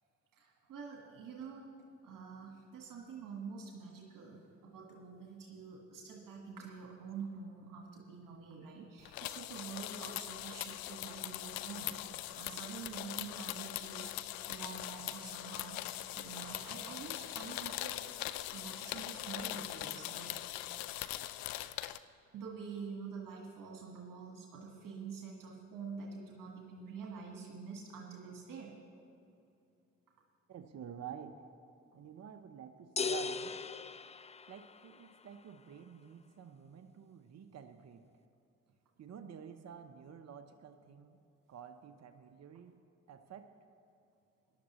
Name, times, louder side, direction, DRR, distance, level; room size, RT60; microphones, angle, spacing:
voice 1, 0.3-15.8 16.1-18.0 18.5-20.3 22.3-28.7, right 5 dB, 65° right, -1 dB, 1.6 m, -47 dB
coin bottle, 9.0-22.0, left 15 dB, 70° left, 0.5 m, -41 dB
voice 2, 30.5-31.4 31.9-33.6 34.5-38.0 39.0-41.2 41.5-42.8 43.1-43.5, right 8 dB, 45° right, 8 dB, 0.8 m, -50 dB
sound 1, 33.0-35.0, left 5 dB, 20° left, 0.4 m, -38 dB
18.5 x 11.5 x 3.1 m, 2.6 s
hypercardioid pair, 45°, 35 cm